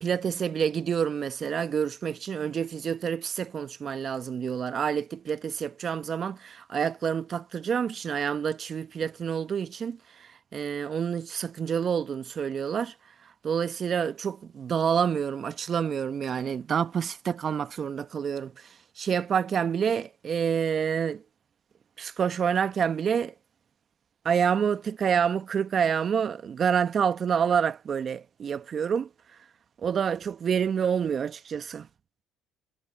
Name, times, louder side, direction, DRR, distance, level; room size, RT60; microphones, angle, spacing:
voice 1, 0.0-12.9 13.4-21.2 22.0-23.3 24.2-29.1 29.8-31.9, right 7 dB, 45° right, 1.0 m, -28 dB
hypercardioid pair, 65°, 0 cm